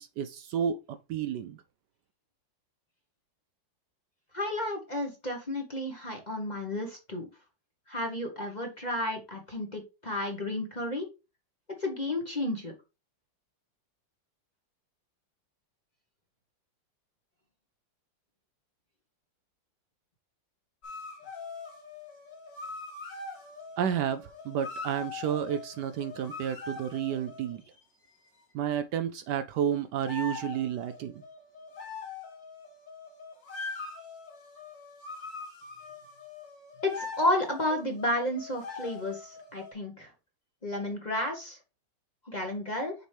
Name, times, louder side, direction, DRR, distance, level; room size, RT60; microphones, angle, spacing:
voice 1, 0.0-1.6 23.8-27.6 28.5-31.2, right 9 dB, 75° right, 1.1 m, -31 dB
voice 2, 4.3-7.3 7.9-11.1 11.8-12.7 36.8-40.1 40.6-41.6 42.2-42.9, left 1 dB, 25° left, 1.1 m, -32 dB
sound 1, 20.8-27.8 30.0-39.7, left 4 dB, 55° left, 2.3 m, -43 dB
6.5 x 4.6 x 3.3 m
omnidirectional pair, 2.0 m